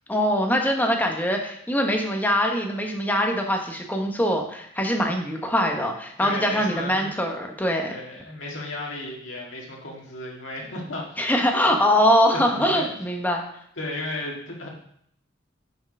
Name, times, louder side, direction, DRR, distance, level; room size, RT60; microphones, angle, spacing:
voice 1, 0.1-7.9 11.2-13.4, equal, 10° left, 2 dB, 1.1 m, -23 dB
voice 2, 6.2-7.1 7.9-11.2 12.3-12.9 13.8-14.7, left 2 dB, 85° left, -2 dB, 2.0 m, -34 dB
6.6 x 5.0 x 5.4 m, 0.68 s
head